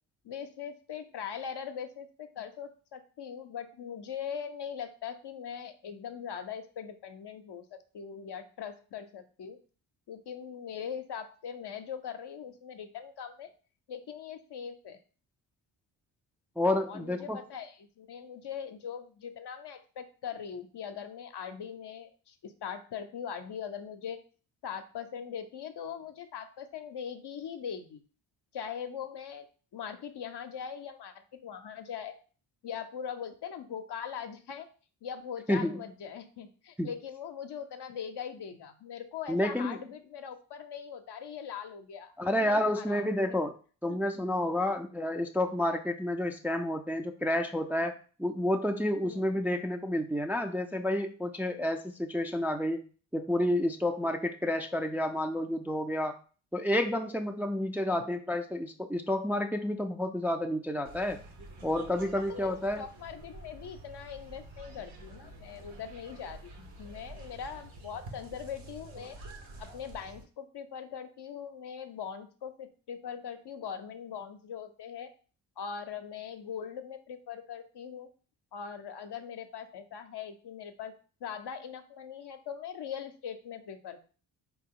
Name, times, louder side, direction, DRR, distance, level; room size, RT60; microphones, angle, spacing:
voice 1, 0.2-9.6 10.1-13.5 13.9-15.0 16.8-24.2 24.6-28.0 28.5-29.5 29.7-32.2 32.6-34.7 35.0-43.2 43.9-44.0 44.6-44.8 49.0-49.3 62.1-69.2 69.6-75.1 75.6-78.1 78.5-80.9 81.2-84.0, left 7 dB, 55° left, 7 dB, 0.8 m, -41 dB
voice 2, 16.6-17.4 35.5-35.8 36.8-36.9 39.3-39.8 42.2-43.5 43.8-52.8 53.1-56.2 56.5-61.2 61.6-62.8, left 1 dB, 5° right, 4 dB, 0.5 m, -30 dB
sound 1, 60.8-70.2, right 2 dB, 65° right, 1.2 m, -48 dB
4.0 x 3.0 x 3.7 m, 0.38 s
supercardioid pair, 45°, 49 cm